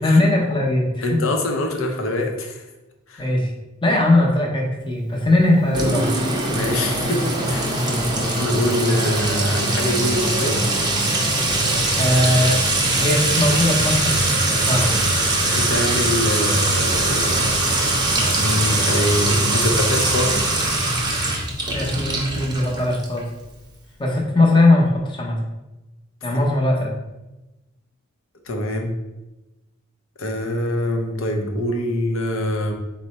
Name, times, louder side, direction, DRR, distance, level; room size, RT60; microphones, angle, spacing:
voice 1, 0.0-1.2 3.2-3.5 3.8-6.1 7.8-8.1 11.9-12.6 13.0-14.9 21.7-23.3 24.0-25.4 26.2-26.9, left 2 dB, 25° left, -1 dB, 0.7 m, -19 dB
voice 2, 1.0-2.6 3.1-3.2 6.5-7.8 8.1-10.6 15.5-17.5 18.1-20.4 28.5-28.9 30.2-32.7, left 1 dB, 75° left, 3 dB, 0.6 m, -24 dB
Sink (filling or washing) / Trickle dribble / Fill (with liquid), 5.7-23.2, right 2 dB, 20° right, 0.6 m, -21 dB
4.6 x 2.1 x 4.1 m, 1.0 s
head